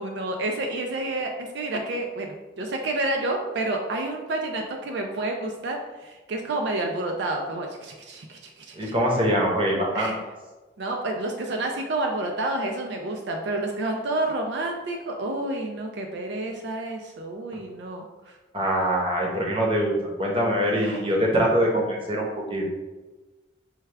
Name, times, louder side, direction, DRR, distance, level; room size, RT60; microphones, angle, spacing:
voice 1, 0.0-8.9 9.9-10.1 10.8-18.3 20.8-21.1 21.4-21.6, right 2 dB, 75° right, 2 dB, 0.4 m, -29 dB
voice 2, 8.8-10.1 18.5-22.6, equal, 30° right, -2 dB, 0.8 m, -23 dB
4.7 x 2.3 x 3.2 m, 1.2 s
head